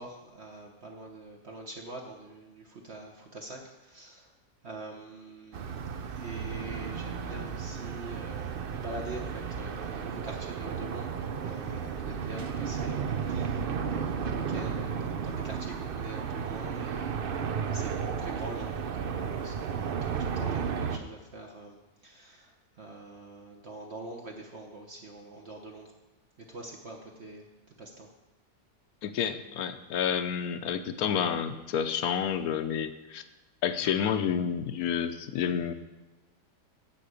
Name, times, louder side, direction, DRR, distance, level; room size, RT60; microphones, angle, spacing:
voice 1, 0.0-4.3 4.6-5.8 6.1-17.9 18.2-21.8 22.0-25.9 26.5-27.5 27.8-28.1, right 2 dB, 45° right, 0 dB, 1.2 m, -44 dB
sound 1, 5.5-21.0, right 6 dB, 70° right, 0.5 m, -33 dB
voice 2, 29.0-33.2 33.6-35.7, left 8 dB, 70° left, 11 dB, 1.1 m, -29 dB
8.5 x 6.2 x 8.2 m, 1.1 s
omnidirectional pair, 1.7 m